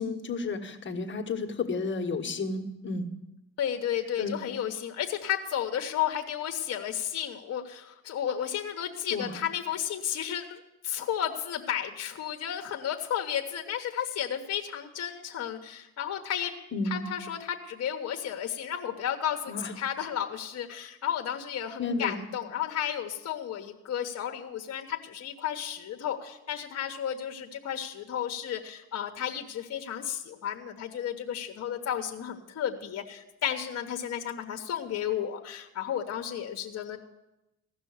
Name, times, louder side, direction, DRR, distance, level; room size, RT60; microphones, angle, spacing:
voice 1, 0.0-3.1 4.2-4.4 9.1-9.4 16.7-17.1 19.5-19.7 21.8-22.2, left 3 dB, 40° left, 5 dB, 1.4 m, -32 dB
voice 2, 3.6-16.5 16.9-37.0, left 9 dB, 55° left, 4 dB, 1.1 m, -33 dB
15.5 x 6.2 x 7.8 m, 0.93 s
cardioid pair, 90°, 30 cm